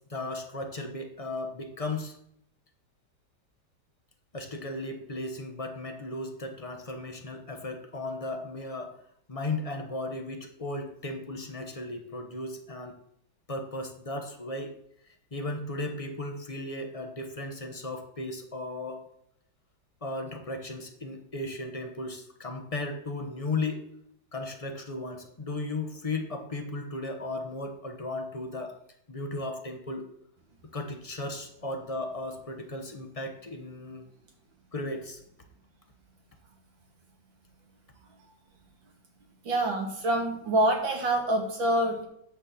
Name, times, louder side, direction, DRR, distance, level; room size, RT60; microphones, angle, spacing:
voice 1, 0.1-2.2 4.3-8.9 9.3-12.9 13.5-14.7 15.3-19.0 20.0-23.8 24.3-28.8 29.1-30.1 30.7-34.0 34.7-35.2, left 2 dB, 25° left, 4 dB, 0.8 m, -35 dB
voice 2, 39.4-42.1, right 1 dB, 80° right, 1 dB, 2.6 m, -26 dB
9.6 x 4.2 x 7.1 m, 0.73 s
omnidirectional pair, 2.0 m